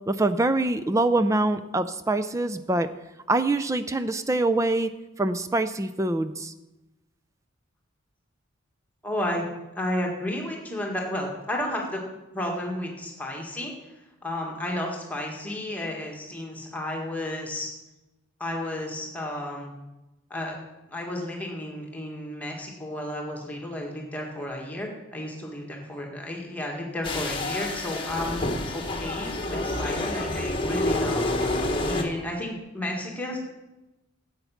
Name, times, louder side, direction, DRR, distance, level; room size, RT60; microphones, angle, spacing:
voice 1, 0.1-2.9 3.3-4.9 5.2-6.5, right 2 dB, 15° right, 10 dB, 0.4 m, -24 dB
voice 2, 9.0-9.5 9.8-12.0 12.3-13.7 14.2-17.7 18.4-19.7 20.3-20.6 20.9-31.2 31.9-33.4, left 1 dB, 10° left, -1 dB, 1.8 m, -32 dB
sound 1, 27.0-32.0, left 2 dB, 25° left, 1.2 m, -28 dB
12.0 x 8.1 x 5.8 m, 1.0 s
head